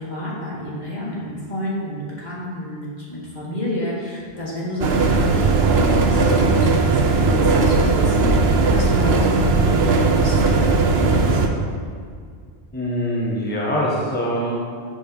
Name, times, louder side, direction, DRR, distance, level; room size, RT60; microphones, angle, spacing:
voice 1, 0.0-10.7 10.9-11.4, left 1 dB, 45° left, -6 dB, 2.3 m, -29 dB
sound 1, 4.8-11.5, right 3 dB, 75° right, 1.0 m, -17 dB
voice 2, 12.7-14.7, equal, 10° left, -5 dB, 1.1 m, -23 dB
7.5 x 7.1 x 5.4 m, 2.1 s
omnidirectional pair, 1.1 m